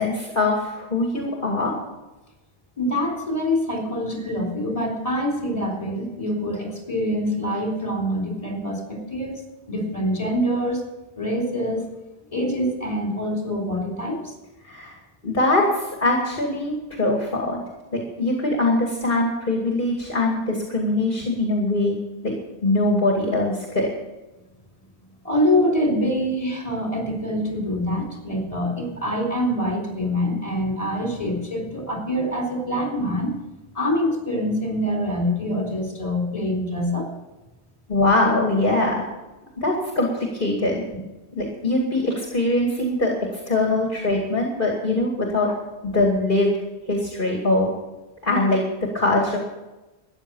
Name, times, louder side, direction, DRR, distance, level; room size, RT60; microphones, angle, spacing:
voice 1, 0.0-1.7 14.6-15.0 15.2-17.6 17.9-22.3 22.6-23.9 37.9-39.0 39.6-40.8 41.3-45.5 45.8-46.5 46.9-47.7 48.2-49.4, left 2 dB, 50° left, 0 dB, 2.5 m, -22 dB
voice 2, 2.8-9.4 9.7-10.9 11.2-11.9 12.3-14.3 25.2-33.4 33.7-37.1, equal, 35° left, 1 dB, 3.9 m, -25 dB
14.0 x 10.0 x 7.1 m, 1.0 s
omnidirectional pair, 1.1 m